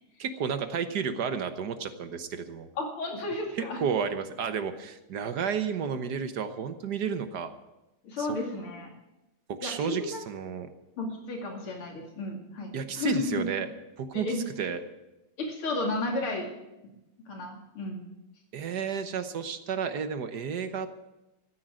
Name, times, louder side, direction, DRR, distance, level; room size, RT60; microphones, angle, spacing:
voice 1, 0.2-2.7 3.6-7.5 8.2-8.3 9.5-10.7 12.7-13.7 14.0-14.3 14.6-14.8 18.5-20.9, right 6 dB, 55° right, 9 dB, 1.4 m, -32 dB
voice 2, 2.8-3.8 8.0-8.9 9.6-10.2 11.0-13.4 14.1-14.4 15.4-16.5 17.3-18.0, left 2 dB, 80° left, 1 dB, 3.4 m, -33 dB
14.5 x 9.3 x 8.9 m, 0.97 s
omnidirectional pair, 2.3 m